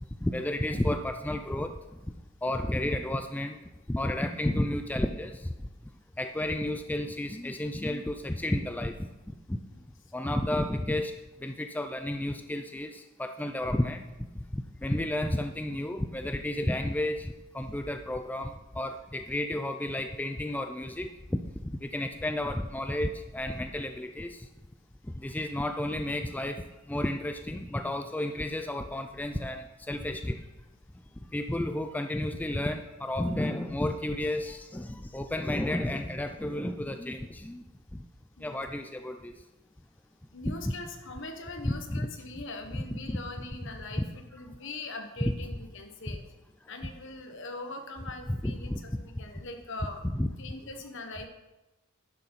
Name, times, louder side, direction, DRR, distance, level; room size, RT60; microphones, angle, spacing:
voice 1, 0.2-1.8 2.4-3.6 3.9-5.5 6.2-9.6 10.1-11.1 11.4-14.1 14.4-24.5 25.1-30.4 31.3-37.6 37.9-38.0 38.4-39.4 40.5-40.6 41.6-42.1 42.7-43.2 45.2-45.3 48.3-48.8 49.2-49.3 50.2-50.3, left 1 dB, 10° left, 7 dB, 0.3 m, -32 dB
voice 2, 40.3-46.2 46.7-50.1 50.4-51.3, left 2 dB, 60° left, 5 dB, 1.3 m, -42 dB
11.0 x 6.6 x 5.6 m, 1.0 s
head